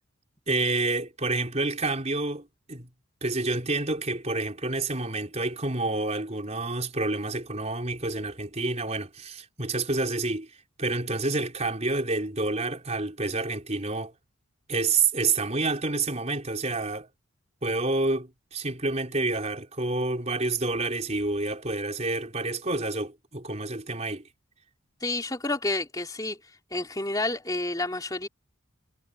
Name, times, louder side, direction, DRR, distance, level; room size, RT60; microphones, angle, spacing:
voice 1, 0.5-2.9 3.2-10.5 10.8-14.1 14.7-17.1 17.6-24.3, right 3 dB, 30° right, 4.5 m, -28 dB
voice 2, 25.0-26.4 26.7-28.3, left 2 dB, 15° left, 3.1 m, -29 dB
head